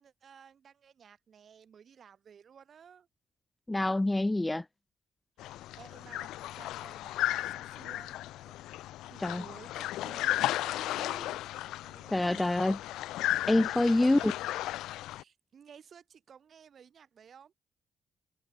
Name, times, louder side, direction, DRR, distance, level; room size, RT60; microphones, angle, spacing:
voice 1, 0.0-3.1 5.4-8.2 8.4-8.6 9.1-11.4 11.8-12.4 13.8-14.4 15.0-17.5, right 7 dB, 55° right, 4.2 m, -54 dB
voice 2, 3.7-4.6 9.2-9.4 12.1-12.8 13.5-14.3, left 2 dB, 15° left, 0.6 m, -26 dB
sound 1, 5.4-15.2, left 15 dB, 90° left, 0.6 m, -35 dB
cardioid pair, 90°, 0 cm